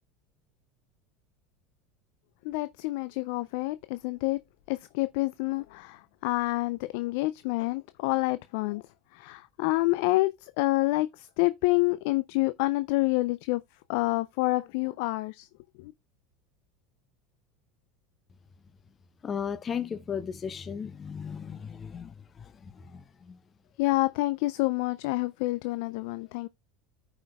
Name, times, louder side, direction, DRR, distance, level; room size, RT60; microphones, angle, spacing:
voice 1, 2.4-4.4 4.7-8.8 9.1-13.6 13.9-15.5 15.8-15.9 23.8-26.5, left 21 dB, 65° left, 0.3 m, -28 dB
voice 2, 19.2-23.4, left 7 dB, 30° left, 0.6 m, -36 dB
14.5 x 5.0 x 2.3 m
hypercardioid pair, 80°, 0 cm